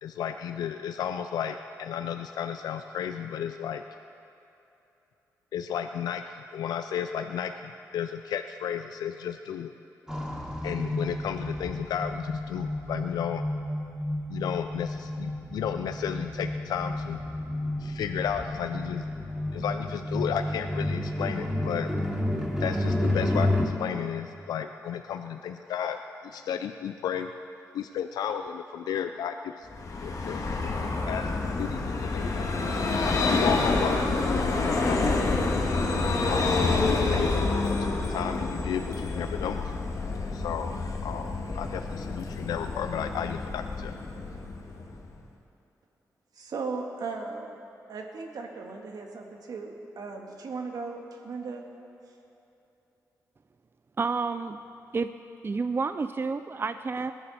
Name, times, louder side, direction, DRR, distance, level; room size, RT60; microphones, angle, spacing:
voice 1, 0.0-3.8 5.5-9.7 10.6-13.4 14.3-17.2 17.8-19.1 19.5-21.9 22.6-26.0 26.2-27.3 27.7-29.7 30.0-30.4 31.1-31.2 31.6-31.8 32.1-32.8 33.3-35.1 36.3-39.9 40.3-44.0, left 8 dB, 90° left, 8 dB, 0.4 m, -33 dB
sound 1, 10.1-23.6, left 1 dB, 10° right, 2.7 m, -31 dB
Vehicle, 29.7-45.2, left 3 dB, 60° left, 1.8 m, -28 dB
voice 2, 46.3-47.6 47.9-51.6, right 4 dB, 75° right, 2 dB, 1.7 m, -37 dB
voice 3, 54.0-54.6 54.9-55.1 55.4-57.1, right 4 dB, 35° right, 11 dB, 0.5 m, -29 dB
20.5 x 11.0 x 4.3 m, 3.0 s
cardioid pair, 55°, 7 cm